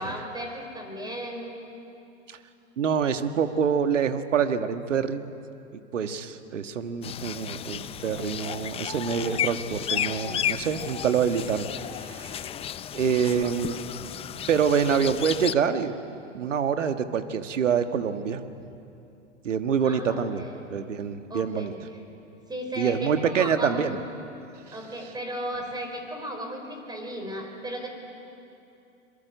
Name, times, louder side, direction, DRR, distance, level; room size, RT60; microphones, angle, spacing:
voice 1, 0.0-1.6 19.8-20.6 21.3-21.8 22.5-23.9 24.7-27.9, equal, 10° right, 3 dB, 4.7 m, -35 dB
voice 2, 2.8-5.3 5.9-12.5 12.9-13.8 14.5-18.4 19.4-20.4 20.7-21.7 22.8-24.0 24.7-24.8, right 7 dB, 75° right, 9 dB, 1.6 m, -26 dB
sound 1, 7.0-15.5, left 10 dB, 15° left, 0.5 m, -33 dB
27.0 x 22.5 x 8.1 m, 2.8 s
hypercardioid pair, 100°, 37 cm